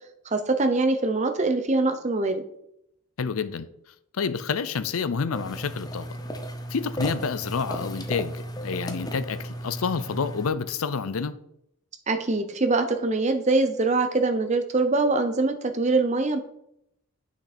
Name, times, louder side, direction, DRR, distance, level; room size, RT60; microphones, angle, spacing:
voice 1, 0.3-2.4 12.1-16.4, right 3 dB, 30° right, 0.7 m, -23 dB
voice 2, 3.2-3.7 4.1-6.1 6.7-11.4, left 5 dB, 75° left, 0.5 m, -28 dB
sound 1, 5.3-10.5, equal, 15° left, 0.7 m, -35 dB
8.1 x 6.0 x 4.3 m
head